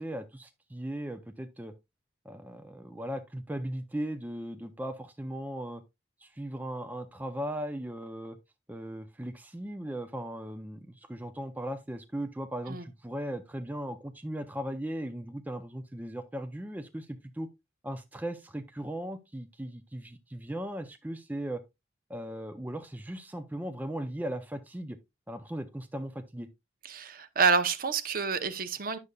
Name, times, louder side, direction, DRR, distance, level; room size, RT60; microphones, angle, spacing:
voice 1, 0.0-1.7 2.2-5.8 6.2-8.4 8.7-17.5 17.8-21.6 22.1-25.0 25.3-26.5, right 1 dB, 10° right, 0.4 m, -37 dB
voice 2, 26.8-29.0, right 5 dB, 50° right, 0.7 m, -28 dB
9.6 x 6.5 x 2.3 m
head